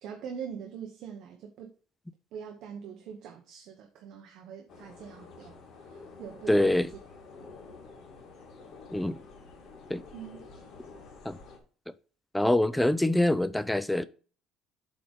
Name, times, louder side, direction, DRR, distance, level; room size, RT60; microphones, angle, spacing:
voice 1, 0.0-1.7 2.3-6.8 10.1-10.4, right 7 dB, 50° right, 1.1 m, -43 dB
sound 1, 4.7-11.6, left 4 dB, 45° left, 2.1 m, -49 dB
voice 2, 6.5-6.9 8.9-9.2 9.9-10.0 11.3-11.4 12.3-14.1, left 1 dB, 5° left, 0.3 m, -24 dB
7.7 x 3.8 x 5.1 m
cardioid pair, 180°, 0 cm